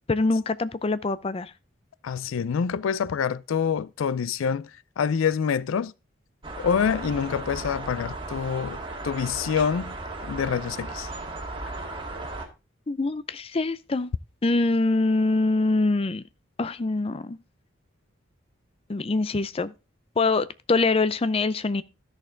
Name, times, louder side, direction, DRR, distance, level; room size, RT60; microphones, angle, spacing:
voice 1, 0.1-1.5 12.9-14.1 14.4-16.2 16.6-17.4 18.9-19.7 20.2-21.8, left 3 dB, 30° left, 0.5 m, -24 dB
voice 2, 2.0-4.7 5.0-5.9 6.6-9.9 10.2-11.1, left 7 dB, 90° left, 0.4 m, -26 dB
sound 1, 6.4-12.5, right 2 dB, 25° right, 1.9 m, -36 dB
13.0 x 6.5 x 3.8 m
head